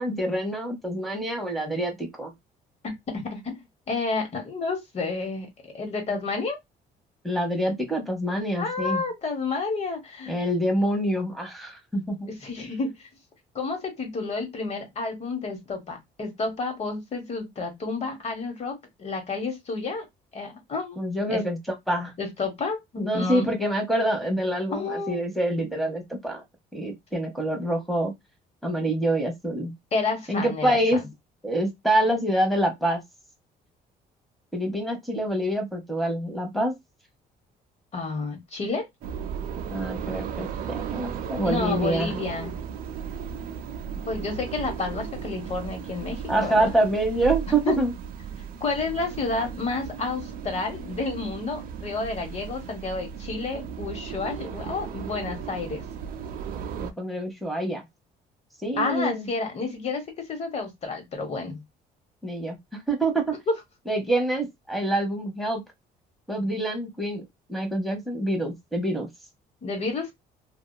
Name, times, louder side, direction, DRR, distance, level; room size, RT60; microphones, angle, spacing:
voice 1, 0.0-2.3 6.1-6.2 7.2-9.1 10.3-12.3 21.0-21.6 21.9-22.1 23.0-26.4 26.7-28.1 28.6-29.7 30.3-31.0 31.4-33.0 34.5-36.7 39.7-42.1 46.3-47.9 56.8-57.8 58.6-59.3 62.2-62.6 62.9-63.4 63.9-65.6 66.3-67.2 67.5-69.1, right 1 dB, ahead, 1.0 m, -26 dB
voice 2, 3.1-5.5 5.7-6.6 8.6-10.4 12.4-13.1 13.5-20.0 20.3-21.4 22.2-23.5 24.7-25.2 29.9-30.8 37.9-38.9 41.4-42.6 44.0-46.7 47.6-47.8 48.6-55.8 58.8-61.6 69.6-70.1, left 3 dB, 40° left, 1.2 m, -30 dB
sound 1, 39.0-56.9, right 7 dB, 60° right, 0.5 m, -35 dB
2.7 x 2.3 x 2.2 m
cardioid pair, 110°, 17 cm